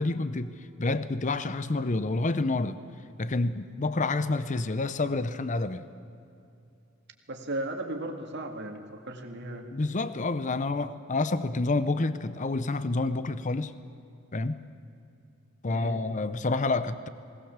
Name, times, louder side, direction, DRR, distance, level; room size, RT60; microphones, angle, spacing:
voice 1, 0.0-2.8 3.2-5.9 9.7-13.7 14.3-14.6 15.6-17.1, left 3 dB, 40° left, 13 dB, 0.7 m, -28 dB
voice 2, 7.3-9.7 15.7-16.0, right 1 dB, 55° right, 4 dB, 2.1 m, -36 dB
20.5 x 18.5 x 7.3 m, 2.6 s
head